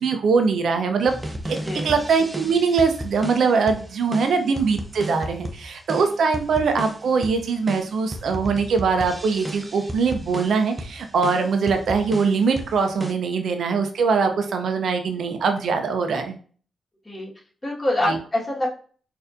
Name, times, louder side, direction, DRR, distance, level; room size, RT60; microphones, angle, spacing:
voice 1, 0.0-1.2 1.5-1.6 1.8-16.4 18.1-18.2, right 5 dB, 70° right, 6 dB, 0.6 m, -22 dB
sound 1, 1.1-13.1, right 1 dB, 25° right, 0.6 m, -34 dB
voice 2, 1.6-2.0 17.1-17.3 17.6-18.7, left 1 dB, 25° left, -4 dB, 1.7 m, -25 dB
4.2 x 2.6 x 2.6 m, 0.43 s
supercardioid pair, 45°, 0 cm